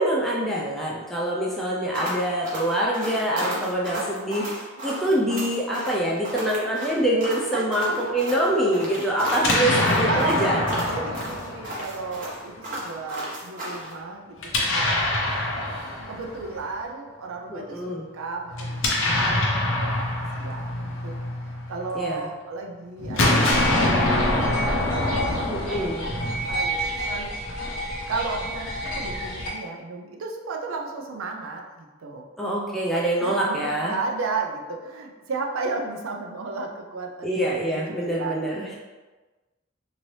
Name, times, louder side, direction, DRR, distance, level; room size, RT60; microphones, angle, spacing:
voice 1, 0.0-4.5 4.8-10.6 17.5-18.1 22.0-22.3 25.5-26.1 32.4-33.9 37.2-38.7, right 1 dB, ahead, -5 dB, 0.4 m, -25 dB
sound 1, 1.9-13.9, equal, 40° right, 0.8 m, -33 dB
voice 2, 4.8-5.1 7.5-8.4 9.5-15.0 15.5-21.2 21.5-27.3 28.1-32.3 33.2-38.4, right 3 dB, 80° right, 2 dB, 0.5 m, -34 dB
Explosion, 9.3-12.3 14.4-16.6 18.5-22.0 23.0-26.4, left 1 dB, 65° left, 0.6 m, -25 dB
sound 2, 23.5-29.5, equal, 80° left, 1.1 m, -30 dB
2.8 x 2.7 x 3.1 m, 1.2 s
head